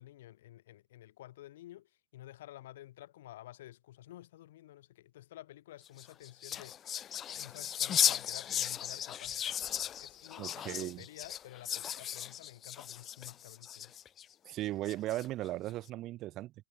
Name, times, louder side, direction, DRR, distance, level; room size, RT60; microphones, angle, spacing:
voice 1, 0.0-9.6 10.0-13.9, left 14 dB, 65° left, 6.4 m, -52 dB
sound 1, 5.9-14.3 14.9-15.5, left 10 dB, 30° left, 2.1 m, -36 dB
voice 2, 10.4-11.0 14.5-16.5, right 16 dB, 40° right, 4.9 m, -37 dB
hypercardioid pair, 110°, 0 cm